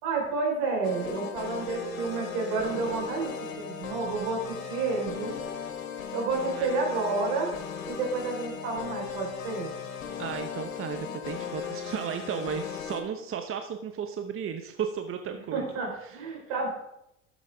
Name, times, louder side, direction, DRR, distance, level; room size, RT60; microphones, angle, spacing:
voice 1, 0.0-3.3 3.6-5.3 6.1-7.5 7.9-9.8 15.5-16.7, right 4 dB, 70° right, -1 dB, 4.1 m, -30 dB
sound 1, 0.8-13.0, left 7 dB, 90° left, 1.3 m, -37 dB
voice 2, 10.2-15.7 16.0-16.2, right 7 dB, 35° right, 6 dB, 0.8 m, -34 dB
12.0 x 7.2 x 3.4 m, 0.86 s
hypercardioid pair, 80°, 39 cm